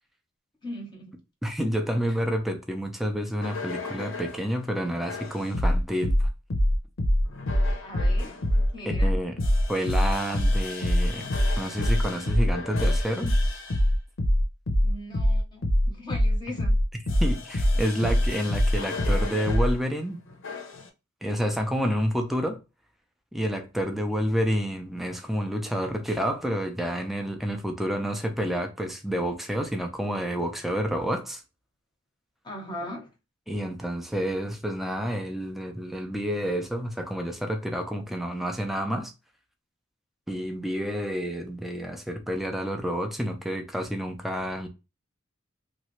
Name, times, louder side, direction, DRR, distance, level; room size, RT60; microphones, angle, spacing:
voice 1, 0.6-1.1 7.8-8.3 8.7-9.1 14.8-15.7 16.0-16.7 32.4-33.1, left 1 dB, 25° left, 0.8 m, -38 dB
voice 2, 1.4-6.3 8.9-9.4 9.7-11.3 11.6-13.3 17.2-20.2 21.2-22.6 23.3-31.4 33.5-39.1 40.3-44.7, equal, ahead, 0.5 m, -29 dB
sound 1, 3.4-4.4 5.1-19.8 20.4-20.8, left 1 dB, 70° left, 0.7 m, -24 dB
3.0 x 2.4 x 3.0 m
head